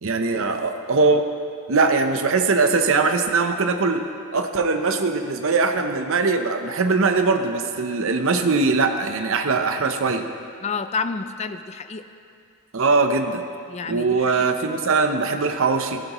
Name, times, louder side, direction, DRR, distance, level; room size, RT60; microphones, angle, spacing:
voice 1, 0.0-1.2 1.7-4.0 4.3-10.3 12.7-13.4 13.9-16.0, right 4 dB, 65° right, 7 dB, 0.7 m, -21 dB
voice 2, 10.6-12.1 13.7-14.5, left 4 dB, 30° left, 10 dB, 0.4 m, -29 dB
15.5 x 12.0 x 3.1 m, 2.4 s
head